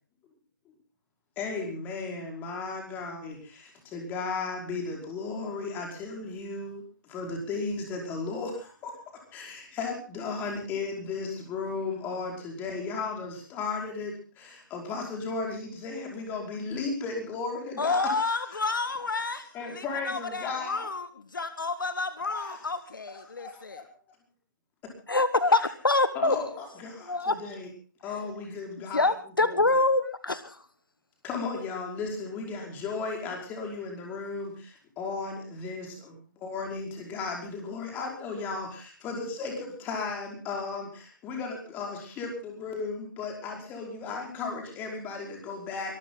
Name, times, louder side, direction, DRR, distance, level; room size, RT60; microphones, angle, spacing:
voice 1, 1.4-18.4 19.5-20.9 22.2-22.6 23.4-23.8 24.8-24.9 26.1-27.7 28.0-29.1 29.4-29.8 31.2-45.9, left 4 dB, 15° left, 5.1 m, -35 dB
voice 2, 17.8-23.8, left 3 dB, 70° left, 1.8 m, -32 dB
voice 3, 25.1-26.4 27.1-27.4 28.9-30.5, left 2 dB, 85° left, 1.4 m, -24 dB
24.0 x 13.5 x 3.9 m
figure-of-eight pair, 140°, 11 cm